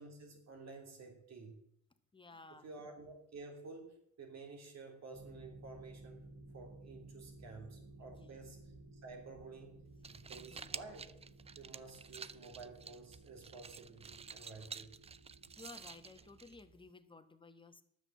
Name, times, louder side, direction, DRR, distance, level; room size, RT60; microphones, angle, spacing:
voice 1, 0.0-1.6 2.5-6.2 6.5-8.6 8.9-9.8 10.1-11.1 11.6-15.0, right 3 dB, 60° right, 3 dB, 3.5 m, -52 dB
voice 2, 2.1-2.7 7.5-7.6 8.0-8.5 10.1-10.7 15.6-17.8, left 3 dB, 15° left, 8 dB, 1.2 m, -56 dB
sound 1, 5.1-16.4, right 2 dB, 80° right, 5.1 m, -57 dB
sound 2, 9.9-16.9, right 5 dB, 20° right, 0.4 m, -51 dB
10.5 x 7.1 x 7.5 m, 0.73 s
cardioid pair, 90°, 30 cm